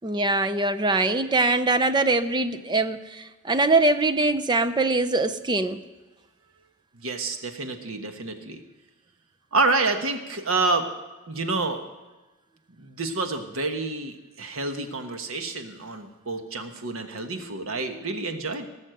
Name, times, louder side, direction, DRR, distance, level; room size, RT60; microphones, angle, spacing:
voice 1, 0.0-5.8, right 2 dB, 20° right, 11 dB, 0.5 m, -23 dB
voice 2, 6.9-8.6 9.5-10.9 11.3-11.8 12.8-18.7, right 3 dB, 75° right, 6 dB, 1.3 m, -28 dB
18.5 x 6.5 x 7.8 m, 1.2 s
head